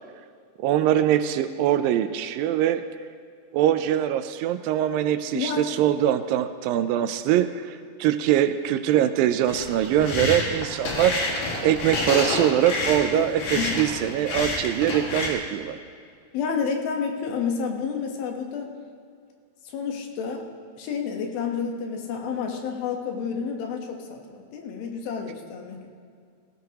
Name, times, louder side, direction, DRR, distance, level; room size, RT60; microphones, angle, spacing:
voice 1, 0.6-2.8 3.5-11.2 11.6-15.8, right 11 dB, 80° right, 11 dB, 2.2 m, -23 dB
voice 2, 5.3-5.7 13.1-13.3 13.5-13.7 16.3-18.7 19.7-20.5 20.8-25.9, left 6 dB, 90° left, 3 dB, 3.1 m, -30 dB
sound 1, 9.5-15.3, left 2 dB, 65° left, 3.4 m, -28 dB
18.0 x 16.5 x 2.9 m, 2.2 s
omnidirectional pair, 4.2 m